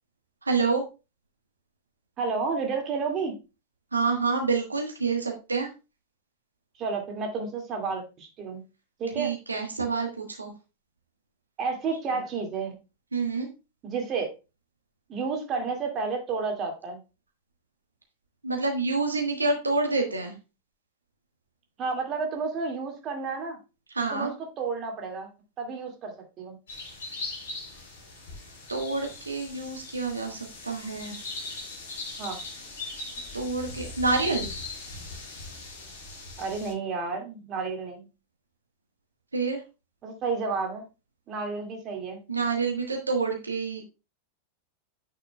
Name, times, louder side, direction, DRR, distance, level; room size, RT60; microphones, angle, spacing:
voice 1, 0.4-0.8 3.9-5.7 9.1-10.5 12.1-12.2 13.1-13.5 18.4-20.3 23.9-24.3 28.7-31.2 33.3-34.5 39.3-39.6 42.3-43.8, right 4 dB, 80° right, 2 dB, 1.3 m, -28 dB
voice 2, 2.2-3.3 6.8-8.6 9.0-9.3 11.6-12.8 13.8-14.3 15.1-17.0 21.8-23.6 24.1-25.3 25.6-26.6 32.2-32.4 36.4-38.1 40.0-40.8 41.3-42.2, right 4 dB, 30° right, 3 dB, 2.1 m, -31 dB
sound 1, 26.7-36.7, left 3 dB, 65° left, 3.4 m, -40 dB
8.8 x 6.5 x 2.2 m, 0.29 s
figure-of-eight pair, 90°, 0 cm